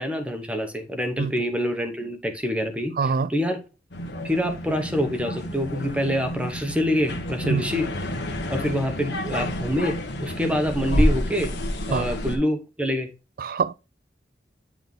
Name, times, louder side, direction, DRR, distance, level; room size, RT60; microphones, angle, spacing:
voice 1, 0.0-3.6 4.2-7.9 8.5-11.5 11.9-13.1, equal, 5° right, 0.9 m, -26 dB
voice 2, 3.0-3.3 7.4-7.6 11.9-12.1 13.4-13.7, right 5 dB, 55° right, 0.3 m, -24 dB
sound 1, 3.9-12.4, equal, 80° left, 1.2 m, -29 dB
9.0 x 3.6 x 3.8 m
head